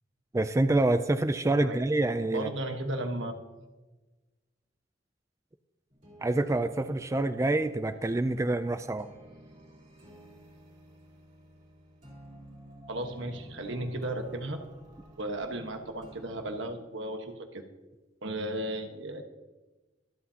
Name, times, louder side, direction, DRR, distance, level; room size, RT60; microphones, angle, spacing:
voice 1, 0.3-2.5 6.2-9.1, right 2 dB, 15° right, 10 dB, 0.3 m, -27 dB
voice 2, 2.3-3.3 12.9-14.6 15.2-17.6 18.2-19.2, right 1 dB, 75° right, 5 dB, 1.3 m, -35 dB
sound 1, 5.9-16.6, equal, 45° right, 3.9 m, -53 dB
24.5 x 8.3 x 2.8 m, 1.2 s
head